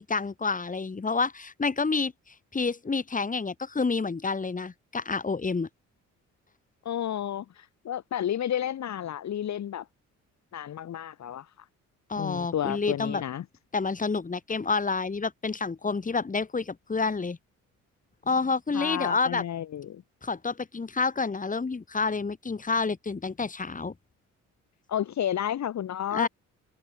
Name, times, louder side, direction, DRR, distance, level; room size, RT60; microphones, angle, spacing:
voice 1, 0.0-5.7 12.1-13.2 13.7-17.4 18.3-19.4 20.2-23.9 26.1-26.3, left 4 dB, 25° left, 3.8 m, -29 dB
voice 2, 6.8-9.8 10.5-11.5 12.2-13.4 18.7-20.0 24.9-26.3, left 10 dB, 65° left, 3.4 m, -31 dB
cardioid pair, 90°, 30 cm